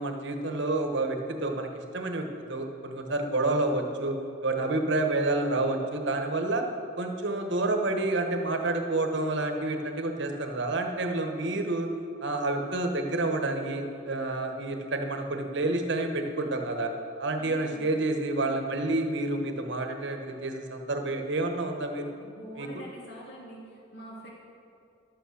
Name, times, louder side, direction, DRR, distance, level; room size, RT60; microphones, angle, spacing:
voice 1, 0.0-1.7 1.9-4.2 4.4-6.6 7.0-11.9 12.2-16.9 17.2-22.1 22.5-22.7, right 2 dB, 65° right, 4 dB, 1.2 m, -29 dB
voice 2, 17.4-17.9 22.2-23.6 23.9-24.3, equal, 60° left, -4 dB, 2.8 m, -44 dB
12.0 x 8.3 x 6.4 m, 2.5 s
head